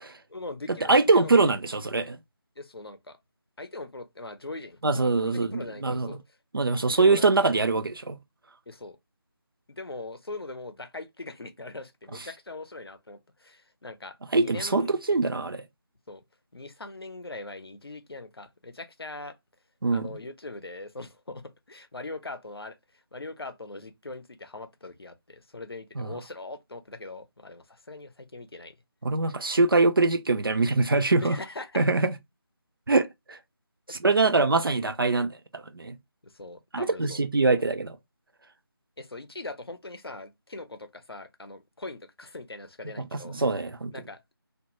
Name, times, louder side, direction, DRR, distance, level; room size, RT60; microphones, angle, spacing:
voice 1, 0.3-1.3 2.6-3.2 3.6-6.2 6.9-7.5 8.7-9.0 9.7-14.9 16.1-16.2 16.5-19.4 19.9-22.8 23.1-28.8 31.2-31.9 33.9-34.0 36.2-37.2 39.0-43.4 43.9-44.3, left 2 dB, 75° left, 0.6 m, -41 dB
voice 2, 0.9-2.2 4.8-6.1 6.5-8.2 14.3-15.6 19.8-20.1 26.0-26.1 29.0-31.4 31.8-32.1 32.9-33.4 33.9-36.0 36.7-38.0 43.0-43.9, right 3 dB, 60° right, 0.4 m, -23 dB
2.1 x 2.1 x 2.9 m
figure-of-eight pair, 160°, 13 cm